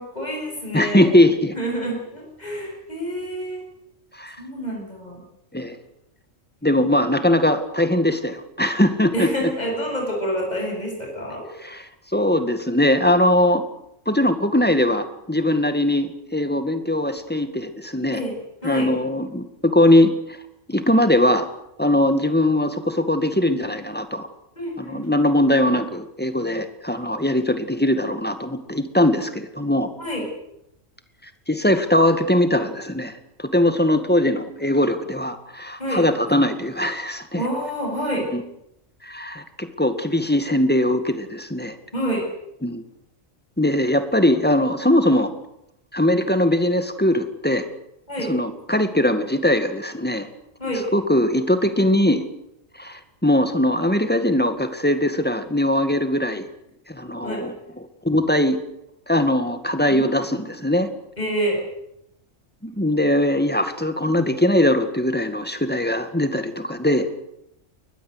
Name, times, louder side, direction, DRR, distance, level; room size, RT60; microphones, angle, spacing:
voice 1, 0.0-1.2 1.5-3.6 4.4-5.2 9.1-11.5 18.1-18.3 18.6-18.9 24.6-25.1 30.0-30.3 35.8-36.0 37.4-38.3 41.9-42.3 48.1-48.3 50.6-50.9 57.2-57.4 59.9-60.1 61.2-61.6, equal, 30° left, -1 dB, 7.5 m, -27 dB
voice 2, 0.7-1.5 4.2-4.4 5.5-5.8 6.6-9.3 11.6-13.6 14.1-18.2 18.6-20.4 20.7-21.5 21.8-24.3 24.8-29.9 31.5-33.1 33.4-37.4 38.3-38.4 39.0-41.8 42.6-42.8 43.6-45.3 45.9-47.7 48.3-50.3 50.9-52.2 52.8-56.4 56.9-57.5 58.0-58.6 59.1-60.9 62.6-67.1, left 1 dB, 5° left, 9 dB, 2.0 m, -20 dB
23.0 x 20.0 x 8.2 m, 0.81 s
omnidirectional pair, 1.3 m